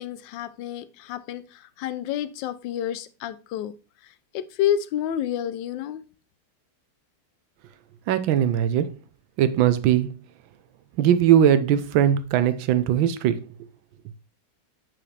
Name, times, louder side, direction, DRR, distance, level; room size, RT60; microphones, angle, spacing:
voice 1, 0.0-3.7 4.3-6.0, left 10 dB, 75° left, 1.3 m, -29 dB
voice 2, 8.1-8.9 9.4-10.1 11.0-13.4, right 10 dB, 85° right, 1.5 m, -20 dB
7.7 x 5.7 x 3.2 m
omnidirectional pair, 2.1 m